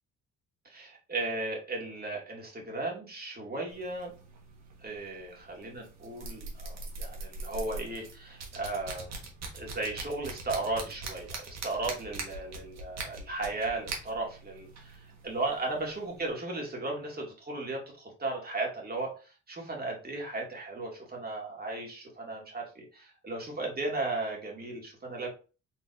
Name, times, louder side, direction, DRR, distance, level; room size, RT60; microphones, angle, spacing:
voice 1, 0.6-4.1 4.8-9.2 9.5-25.3, right 2 dB, 30° right, -1 dB, 2.2 m, -36 dB
sound 1, 3.7-16.3, right 3 dB, 60° right, 1.5 m, -43 dB
4.3 x 3.9 x 2.6 m, 0.34 s
cardioid pair, 90°, 30 cm